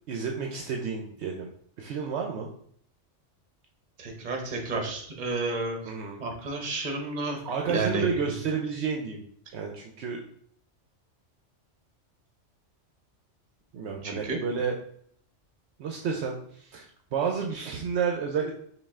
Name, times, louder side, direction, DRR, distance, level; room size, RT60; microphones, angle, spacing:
voice 1, 0.1-1.5 1.8-2.5 5.9-6.2 7.4-9.3 9.5-10.2 13.7-14.7 15.8-18.5, right 6 dB, 70° right, 2 dB, 0.8 m, -31 dB
voice 2, 4.0-5.8 6.2-7.4 7.7-8.1 14.0-14.4, right 3 dB, 40° right, 3 dB, 0.9 m, -31 dB
5.2 x 2.5 x 3.5 m, 0.64 s
omnidirectional pair, 1.3 m